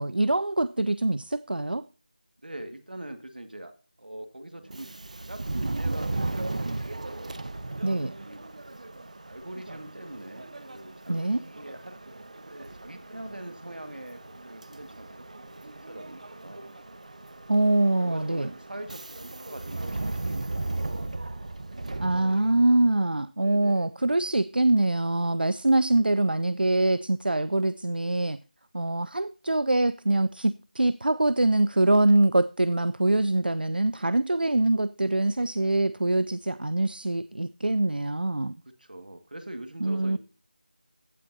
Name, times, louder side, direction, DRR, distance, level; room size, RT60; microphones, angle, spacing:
voice 1, 0.0-1.9 7.8-8.1 11.1-11.4 17.5-18.5 22.0-28.4 28.7-38.5 39.8-40.2, right 2 dB, 85° right, 0.4 m, -24 dB
voice 2, 2.4-7.4 8.1-8.5 9.2-12.1 12.5-16.7 17.8-21.1 23.4-23.9 38.7-40.2, right 1 dB, 65° right, 1.8 m, -43 dB
Subway metro underground, 4.6-23.0, right 2 dB, 50° right, 0.9 m, -36 dB
15.5 x 6.0 x 2.8 m
figure-of-eight pair, 170°, 5 cm